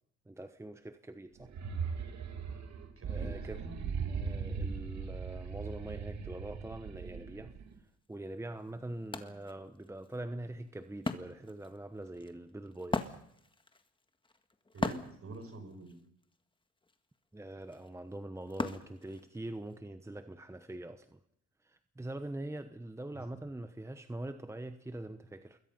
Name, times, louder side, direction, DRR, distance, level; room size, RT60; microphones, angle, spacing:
voice 1, 0.3-1.5 3.1-3.6 4.1-7.5 8.1-13.1 17.3-21.2 21.6-25.6, right 1 dB, 10° right, 1.1 m, -43 dB
sound 1, 1.4-7.7, right 5 dB, 65° right, 2.6 m, -39 dB
voice 2, 3.0-3.3 3.6-3.9 14.7-16.0 23.1-23.4, right 2 dB, 50° right, 5.6 m, -46 dB
Wood, 8.0-8.1 8.5-19.8, left 2 dB, 15° left, 1.7 m, -41 dB
27.5 x 21.5 x 5.6 m
cardioid pair, 90°, 30 cm